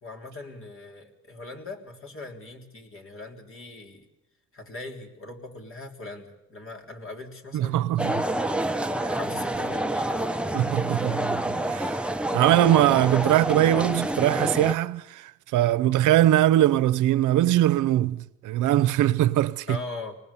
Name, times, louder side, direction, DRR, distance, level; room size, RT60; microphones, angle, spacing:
voice 1, 0.0-4.1 4.5-8.5 9.1-10.5 19.7-20.2, left 2 dB, 45° left, 3.5 m, -40 dB
voice 2, 7.5-8.2 9.0-9.2 10.5-12.0 12.3-19.8, right 13 dB, 85° right, 0.7 m, -22 dB
sound 1, 8.0-14.7, right 1 dB, 5° right, 0.8 m, -28 dB
25.0 x 19.0 x 7.1 m
cardioid pair, 90°, 30 cm